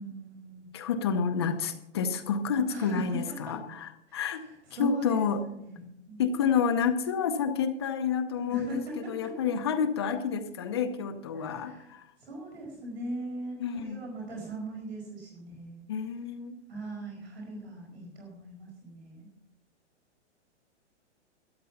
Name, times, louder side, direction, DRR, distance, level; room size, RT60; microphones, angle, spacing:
voice 1, 0.0-0.6 2.7-3.6 4.1-5.8 6.1-6.3 8.5-9.3 11.3-15.8 16.7-19.3, right 1 dB, 60° right, -1 dB, 5.1 m, -39 dB
voice 2, 0.7-4.4 4.8-5.4 6.2-12.0 13.6-14.0 15.9-16.6, left 6 dB, 20° left, 8 dB, 0.7 m, -29 dB
13.0 x 9.9 x 5.8 m, 0.81 s
hypercardioid pair, 175°, 35 cm